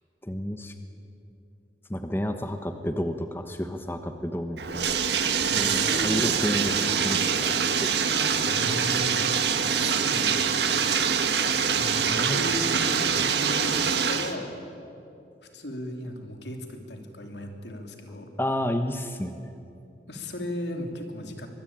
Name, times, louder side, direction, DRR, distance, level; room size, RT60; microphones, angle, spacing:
voice 1, 0.2-0.7 1.9-4.9 5.6-7.9 12.1-12.4 13.2-13.3 18.4-19.4, equal, 10° left, 7 dB, 1.1 m, -31 dB
Bathtub (filling or washing), 4.6-14.3, right 6 dB, 80° right, 1.6 m, -24 dB
voice 2, 5.5-6.3 8.4-9.2 9.7-10.5 11.8-14.5 15.4-18.3 20.1-21.5, left 1 dB, 85° left, 4 dB, 3.1 m, -36 dB
24.5 x 21.0 x 8.8 m, 2.6 s
head